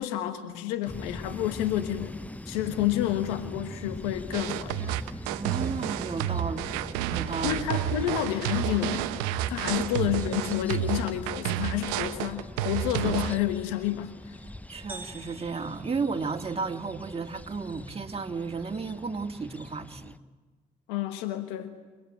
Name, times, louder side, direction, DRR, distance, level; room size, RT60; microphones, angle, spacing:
voice 1, 0.0-2.2 2.5-4.9 7.4-9.1 9.5-14.4 20.9-21.7, left 13 dB, 85° left, 9 dB, 1.3 m, -29 dB
sound 1, 0.8-20.2, left 1 dB, 10° left, 0.9 m, -43 dB
sound 2, 4.3-13.3, right 12 dB, 85° right, 0.9 m, -30 dB
voice 2, 5.3-7.9 9.8-10.1 14.7-20.2, right 4 dB, 30° right, 4 dB, 2.3 m, -34 dB
sound 3, 14.9-16.9, right 2 dB, 10° right, 4.7 m, -47 dB
28.5 x 20.0 x 9.0 m, 1.3 s
hypercardioid pair, 50°, 19 cm